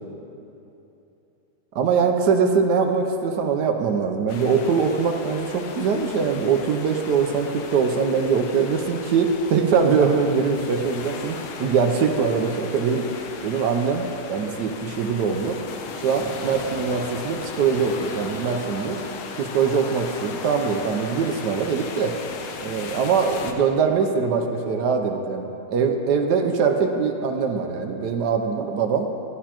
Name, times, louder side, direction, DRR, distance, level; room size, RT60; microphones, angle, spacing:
voice 1, 1.7-13.0 13.4-15.6 16.0-19.0 19.4-22.1 22.6-29.1, right 5 dB, 70° right, 4 dB, 1.0 m, -22 dB
sound 1, 4.3-23.5, left 5 dB, 90° left, 1.6 m, -36 dB
14.0 x 11.0 x 2.9 m, 3.0 s
omnidirectional pair, 2.3 m